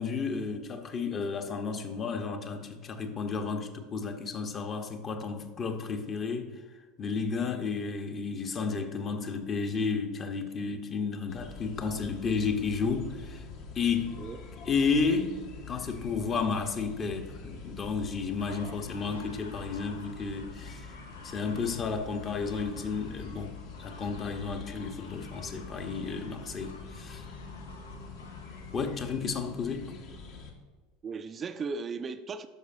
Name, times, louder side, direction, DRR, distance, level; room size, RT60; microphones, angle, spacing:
voice 1, 0.0-6.5 7.0-13.4 13.7-14.1 14.6-15.4 15.7-21.0 21.2-27.2 28.7-29.9, left 5 dB, 35° left, 6 dB, 0.9 m, -32 dB
sound 1, 11.3-30.5, left 4 dB, 55° left, 1.1 m, -45 dB
sound 2, 18.4-28.8, left 3 dB, 85° left, 0.7 m, -52 dB
voice 2, 31.0-32.5, right 5 dB, 30° right, 9 dB, 0.4 m, -37 dB
10.5 x 6.5 x 2.6 m, 1.4 s
figure-of-eight pair, 80°, 0 cm